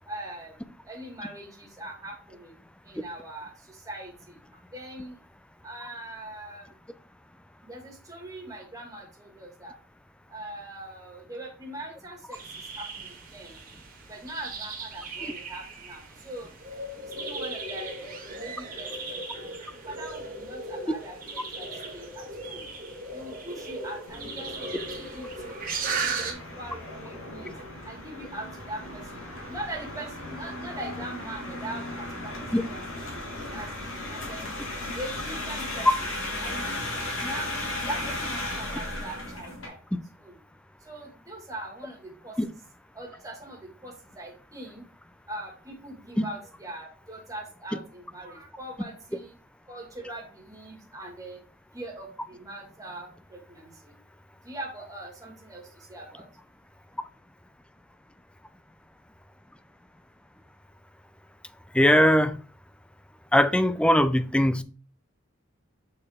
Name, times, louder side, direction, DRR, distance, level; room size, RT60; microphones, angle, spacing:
voice 1, 0.1-2.5 2.8-4.4 4.7-5.2 5.6-6.7 7.6-9.8 10.3-13.6 14.1-16.5 17.0-19.5 19.9-22.7 23.1-27.6 27.8-32.8 33.1-34.7 35.0-35.9 36.4-36.8 37.2-40.4 40.8-42.6 42.9-44.9 45.3-49.4 49.7-51.4 51.7-53.9 54.4-56.3, right 1 dB, 15° right, 1.9 m, -41 dB
sound 1, 12.3-26.3, right 3 dB, 45° right, 1.5 m, -37 dB
sound 2, 24.1-39.7, left 1 dB, 85° left, 2.1 m, -36 dB
voice 2, 61.7-62.4 63.3-64.6, equal, 5° left, 0.3 m, -20 dB
6.5 x 4.4 x 3.6 m
head